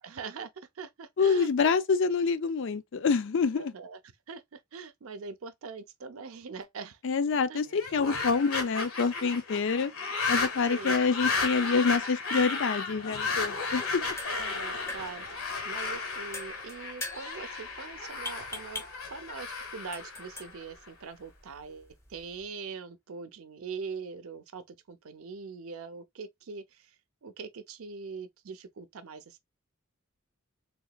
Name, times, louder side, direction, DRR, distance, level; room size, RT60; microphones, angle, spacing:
voice 1, 0.0-1.5 3.6-4.0 4.3-7.0 7.3-7.6 10.7-11.0 14.4-29.4, right 5 dB, 75° right, 0.5 m, -42 dB
voice 2, 1.2-3.7 7.0-9.9 10.3-14.0, left 5 dB, 60° left, 0.4 m, -27 dB
sound 1, 7.7-20.9, left 4 dB, 80° left, 1.3 m, -34 dB
sound 2, 13.9-22.5, left 1 dB, 15° left, 0.6 m, -45 dB
3.5 x 2.9 x 2.2 m
head